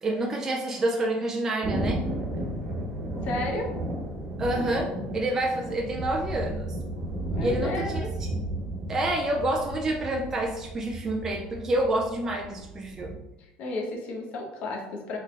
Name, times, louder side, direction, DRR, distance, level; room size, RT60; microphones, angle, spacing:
voice 1, 0.0-2.1 4.4-6.8 7.4-8.5 8.9-13.2, right 1 dB, 15° right, 0 dB, 0.3 m, -28 dB
Thunder, 1.6-13.1, right 1 dB, 40° right, 1.2 m, -33 dB
voice 2, 3.2-3.7 7.3-8.1 13.4-15.2, left 2 dB, 45° left, 1 dB, 0.8 m, -33 dB
3.7 x 3.3 x 3.2 m, 0.91 s
cardioid pair, 170°, 3 cm